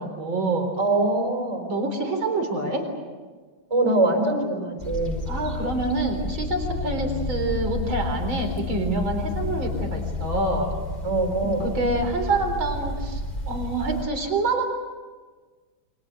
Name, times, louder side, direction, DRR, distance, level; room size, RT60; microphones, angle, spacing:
voice 1, 0.0-0.7 1.7-2.9 5.3-10.7 11.4-14.7, right 2 dB, 70° right, 5 dB, 4.7 m, -26 dB
voice 2, 0.8-1.7 3.7-5.2 11.0-11.7, right 2 dB, 15° right, 1 dB, 4.7 m, -23 dB
sound 1, 4.8-14.0, left 3 dB, 20° left, 4.7 m, -31 dB
29.0 x 24.5 x 6.7 m, 1.4 s
omnidirectional pair, 2.3 m